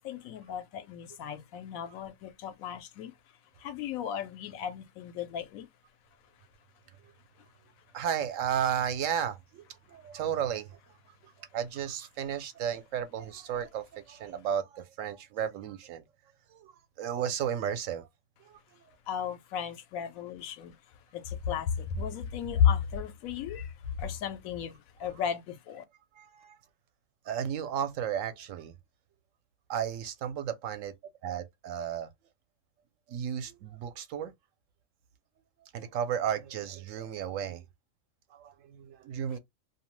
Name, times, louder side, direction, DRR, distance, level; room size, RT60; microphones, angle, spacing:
voice 1, 0.0-3.1 3.6-5.7 19.1-20.8 21.1-25.8, left 8 dB, 85° left, 1.0 m, -33 dB
voice 2, 7.9-10.8 11.2-16.0 16.5-18.1 18.4-18.8 26.2-26.6 27.3-28.7 29.7-30.9 31.2-32.1 33.1-34.3 35.7-37.7 38.3-39.4, right 9 dB, 75° right, 0.9 m, -34 dB
2.6 x 2.1 x 3.0 m
omnidirectional pair, 1.4 m